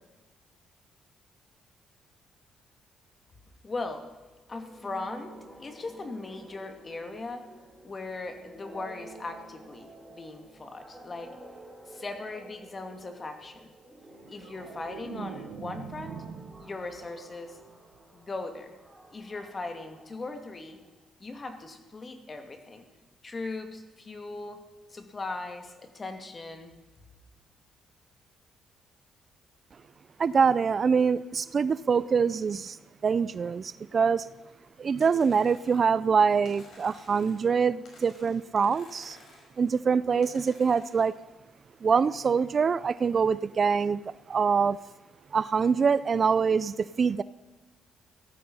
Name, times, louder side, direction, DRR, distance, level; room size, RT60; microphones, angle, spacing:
voice 1, 3.6-4.1 4.5-7.5 7.8-11.4 11.9-13.7 14.3-16.2 16.6-17.6 18.1-18.7 19.1-20.8 21.2-22.8 23.2-24.6 24.9-26.7, left 3 dB, 30° left, 2.4 m, -39 dB
sound 1, 4.5-20.9, right 1 dB, 10° right, 3.4 m, -51 dB
sound 2, 14.0-17.2 17.6-17.9, right 7 dB, 85° right, 1.5 m, -43 dB
voice 2, 30.2-32.8 33.0-34.3 34.8-39.2 39.6-41.2 41.8-44.8 45.3-47.2, right 6 dB, 45° right, 0.4 m, -24 dB
sound 3, 35.0-36.0 36.4-37.6 37.8-39.6 40.2-41.1, left 2 dB, 55° left, 5.4 m, -55 dB
17.5 x 14.0 x 5.5 m
cardioid pair, 90°, 0 cm